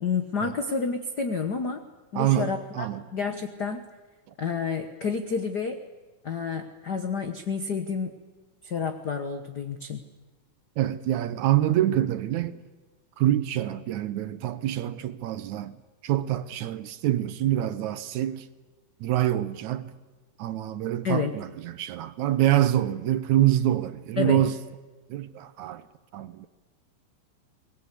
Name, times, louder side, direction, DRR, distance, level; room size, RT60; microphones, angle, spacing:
voice 1, 0.0-1.8 2.1-3.8 4.4-5.8 6.2-8.1 8.6-10.0 21.0-21.4 24.2-24.4, left 5 dB, 85° left, 0.9 m, -29 dB
voice 2, 2.2-3.1 10.8-12.6 13.2-18.5 19.0-20.0 20.4-24.6 25.1-25.9 26.1-26.5, right 13 dB, 70° right, 2.1 m, -26 dB
24.0 x 20.0 x 8.3 m
omnidirectional pair, 3.8 m